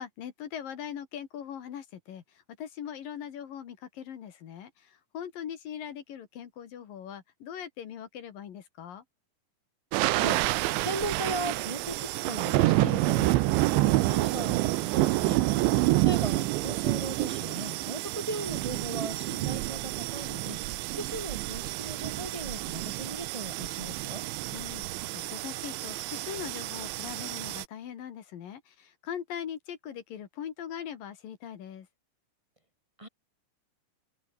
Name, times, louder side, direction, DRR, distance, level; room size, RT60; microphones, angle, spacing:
voice 1, 0.0-2.2 2.6-9.0 15.5-15.9 24.5-31.9, left 9 dB, 55° left, 3.2 m, -41 dB
sound 1, 9.9-27.7, right 18 dB, 85° right, 3.2 m, -28 dB
voice 2, 10.1-24.2 33.0-33.1, right 1 dB, 10° right, 2.8 m, -38 dB
open air
omnidirectional pair, 5.3 m